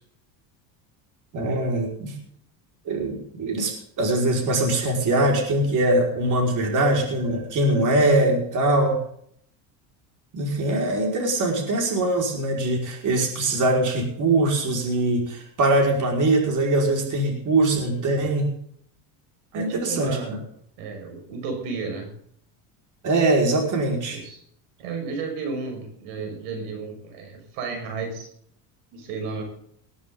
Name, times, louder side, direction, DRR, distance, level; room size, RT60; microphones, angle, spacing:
voice 1, 1.3-2.1 2.9-9.0 10.3-18.5 19.5-20.2 23.0-24.2, right 2 dB, 45° right, 1 dB, 5.4 m, -22 dB
voice 2, 19.5-20.4 20.8-22.1 24.1-24.4 24.8-28.3 28.9-29.4, right 4 dB, 85° right, 3 dB, 5.9 m, -33 dB
19.5 x 12.5 x 3.9 m, 0.66 s
supercardioid pair, 120°, 44 cm